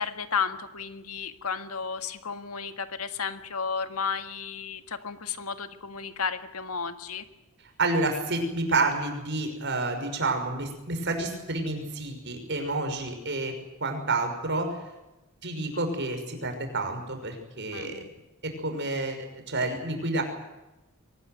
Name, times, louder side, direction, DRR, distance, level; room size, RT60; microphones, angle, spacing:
voice 1, 0.0-7.3 17.7-18.1, left 5 dB, 80° left, 8 dB, 1.8 m, -33 dB
voice 2, 7.8-13.5 13.8-14.7 15.4-18.0 18.4-20.2, right 2 dB, 55° right, 5 dB, 5.9 m, -29 dB
23.5 x 19.5 x 9.5 m, 1.0 s
head